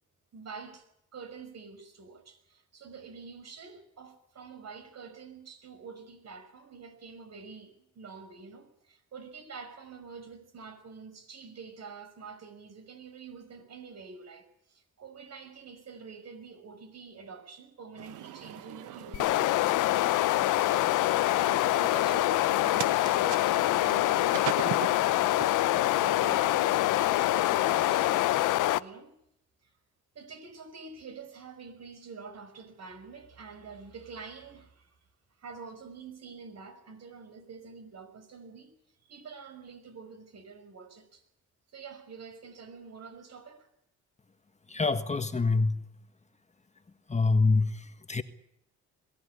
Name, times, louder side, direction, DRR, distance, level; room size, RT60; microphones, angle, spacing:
voice 1, 0.3-0.8 1.1-19.6 21.3-24.6 25.2-29.2 30.1-34.9 35.4-38.8 39.1-41.2 41.7-43.7, right 5 dB, 60° right, 5.7 m, -47 dB
sound 1, 18.0-28.2, right 11 dB, 80° right, 1.4 m, -42 dB
sound 2, 19.1-28.8, left 16 dB, 90° left, 0.8 m, -25 dB
voice 2, 44.7-45.9 47.1-48.2, left 3 dB, 20° left, 1.5 m, -26 dB
22.0 x 16.0 x 9.8 m
cardioid pair, 90°, 30 cm